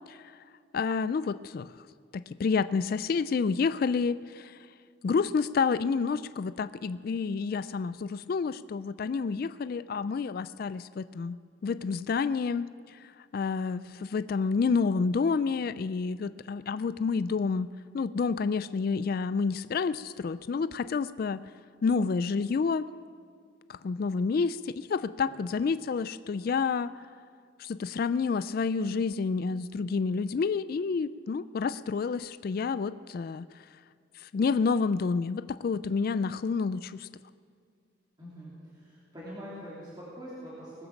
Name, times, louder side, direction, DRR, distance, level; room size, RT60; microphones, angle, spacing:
voice 1, 0.7-1.7 2.1-4.6 5.0-13.0 13.3-17.7 17.9-21.4 21.8-22.9 23.7-26.9 27.6-33.5 34.3-37.1, left 5 dB, 45° left, 15 dB, 0.3 m, -29 dB
voice 2, 38.2-40.9, equal, 20° right, -9 dB, 3.2 m, -44 dB
19.5 x 10.5 x 7.2 m, 2.2 s
head